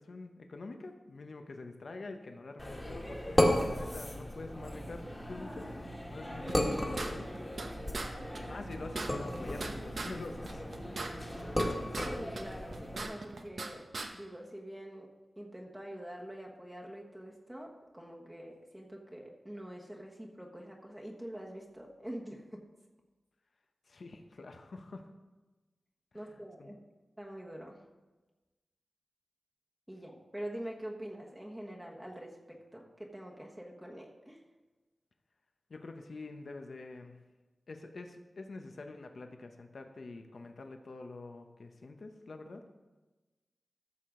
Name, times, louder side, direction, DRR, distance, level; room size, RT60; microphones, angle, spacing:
voice 1, 0.0-5.7 6.1-7.3 8.3-10.6 23.9-25.1 26.1-26.8 35.7-37.2 37.7-42.7, left 3 dB, 65° left, 5 dB, 0.9 m, -46 dB
sound 1, 2.6-13.1, left 1 dB, 15° left, 1.7 m, -35 dB
sound 2, 6.5-7.7 7.9-8.1 8.3-8.4 8.7-10.1 10.4-12.1 12.3-13.7 13.9-14.1, right 3 dB, 65° right, 0.9 m, -39 dB
voice 2, 12.0-13.8 14.1-15.1 15.4-22.6 26.1-26.8 27.2-27.8 29.9-34.4, right 1 dB, 10° right, -1 dB, 1.3 m, -45 dB
13.5 x 6.7 x 3.8 m, 1.2 s
wide cardioid pair, 90°, 0 cm